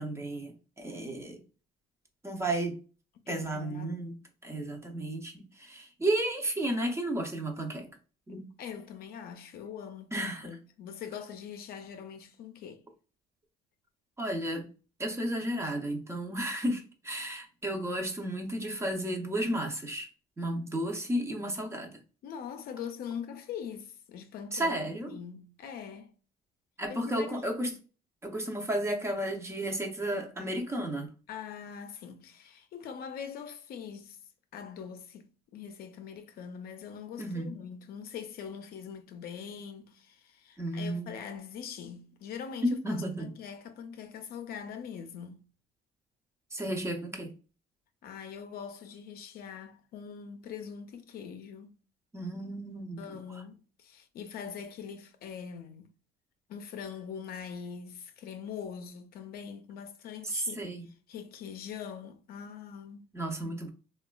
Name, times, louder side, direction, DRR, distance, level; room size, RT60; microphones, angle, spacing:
voice 1, 0.0-1.4 2.2-2.8 3.3-4.2 4.4-8.0 8.3-8.5 10.1-10.6 14.2-14.7 15.0-20.1 20.4-22.0 24.5-25.2 26.8-27.7 28.2-31.1 37.2-37.6 40.6-41.2 42.6-43.3 46.5-47.4 52.1-53.4 60.2-60.9 63.1-63.7, right 1 dB, 15° right, 0.5 m, -33 dB
voice 2, 3.3-4.0 8.3-12.8 22.2-24.7 25.1-26.1 26.9-27.3 31.3-34.2 34.5-45.5 48.0-51.7 53.0-55.9 56.5-60.6 61.1-63.0 63.4-63.6, left 7 dB, 65° left, 0.5 m, -43 dB
3.0 x 2.2 x 2.2 m
cardioid pair, 110°, 17 cm